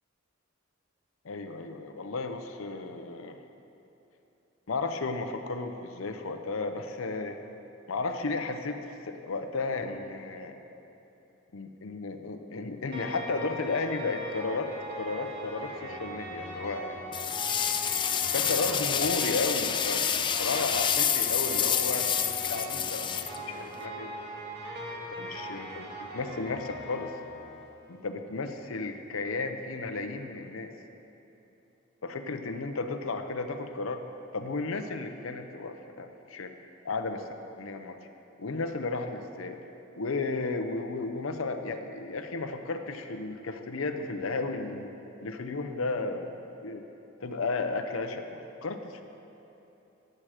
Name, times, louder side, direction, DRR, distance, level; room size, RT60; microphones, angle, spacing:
voice 1, 1.2-3.4 4.7-7.4 7.9-10.6 11.5-14.7 15.0-17.0 18.3-20.1 20.4-23.2 23.5-24.2 25.2-27.1 27.9-30.7 32.0-34.0 34.3-36.5 36.8-37.2 37.6-37.9 38.4-39.6 40.0-44.9 45.2-46.3 46.6-46.8 47.2-49.0, left 3 dB, 75° left, 6 dB, 0.7 m, -33 dB
sound 1, 12.9-27.6, right 1 dB, 55° right, 1.8 m, -40 dB
sound 2, 17.1-23.8, left 8 dB, 25° left, 0.3 m, -28 dB
13.0 x 7.7 x 5.0 m, 2.9 s
head